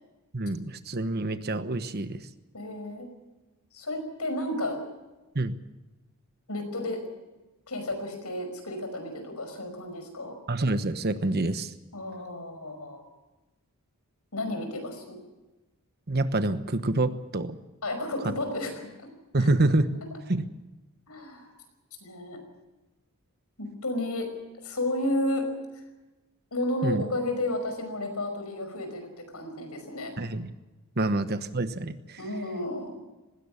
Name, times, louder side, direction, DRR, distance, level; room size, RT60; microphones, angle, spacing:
voice 1, 0.3-2.2 5.3-5.6 10.5-11.7 16.1-17.6 19.3-20.0 20.3-20.4 26.8-27.0 30.2-30.5 31.0-32.2, right 2 dB, 45° right, 11 dB, 1.1 m, -27 dB
voice 2, 2.5-3.1 3.7-4.8 6.5-7.0 7.7-10.3 11.9-13.0 14.3-15.2 17.8-18.9 19.4-19.5 21.1-21.5 22.0-22.4 23.6-24.3 24.6-25.4 26.5-30.3 32.2-32.9, left 1 dB, 85° left, 6 dB, 5.4 m, -32 dB
19.5 x 17.0 x 8.5 m, 1.1 s
head